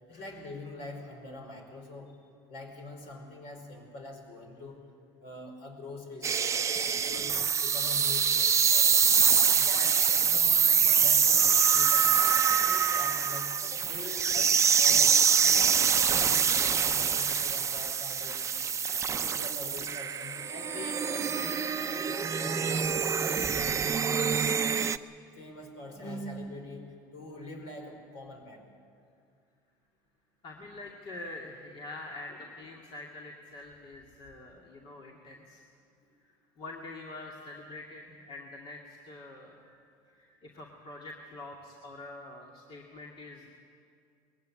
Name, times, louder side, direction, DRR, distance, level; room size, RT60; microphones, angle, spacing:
voice 1, 0.1-2.1 2.5-4.8 5.2-6.7 7.1-9.1 9.5-12.4 12.6-18.4 19.2-23.0 23.2-24.3 25.3-28.7 32.3-32.4, left 1 dB, 65° left, 3 dB, 5.0 m, -44 dB
sound 1, 6.2-25.0, right 7 dB, 30° right, 0.7 m, -25 dB
voice 2, 30.4-35.6 36.2-43.5, left 2 dB, 50° left, -1 dB, 2.6 m, -45 dB
21.0 x 16.0 x 9.8 m, 2.3 s
supercardioid pair, 90°, 11 cm